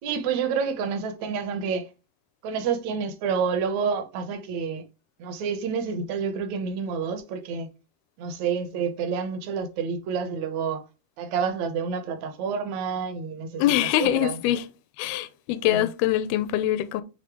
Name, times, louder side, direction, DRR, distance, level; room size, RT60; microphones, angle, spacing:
voice 1, 0.0-1.9 2.4-4.8 5.2-7.7 8.2-10.8 11.2-13.6 14.0-14.4 15.6-15.9, right 6 dB, 75° right, 1.7 m, -28 dB
voice 2, 13.6-14.7 15.0-17.0, left 13 dB, 80° left, 2.4 m, -24 dB
7.9 x 3.1 x 4.7 m
omnidirectional pair, 4.7 m